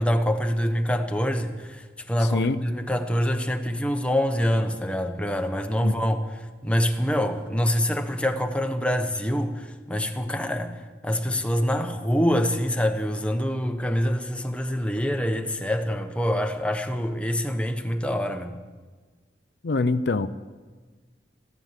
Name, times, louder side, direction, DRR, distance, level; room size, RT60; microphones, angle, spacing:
voice 1, 0.0-18.6, equal, 5° left, 1.0 m, -25 dB
voice 2, 2.2-2.6 5.8-6.0 19.6-20.3, left 3 dB, 65° left, 0.5 m, -24 dB
15.0 x 13.0 x 7.4 m
head